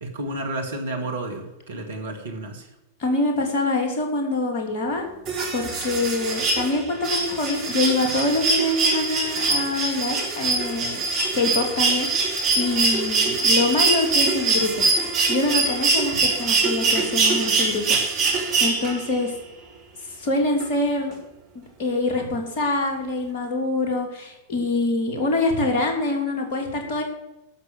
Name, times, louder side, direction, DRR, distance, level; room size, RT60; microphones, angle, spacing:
voice 1, 0.0-2.7, right 2 dB, 65° right, 3 dB, 2.2 m, -31 dB
voice 2, 3.0-5.0 5.5-11.0 11.3-14.9 15.3-19.3 20.1-21.1 21.5-27.0, left 2 dB, 45° left, 2 dB, 3.1 m, -25 dB
sound 1, 5.3-19.2 20.6-20.7, right 3 dB, 40° right, 3.3 m, -23 dB
12.0 x 6.9 x 7.7 m, 0.93 s
figure-of-eight pair, 90°, 0 cm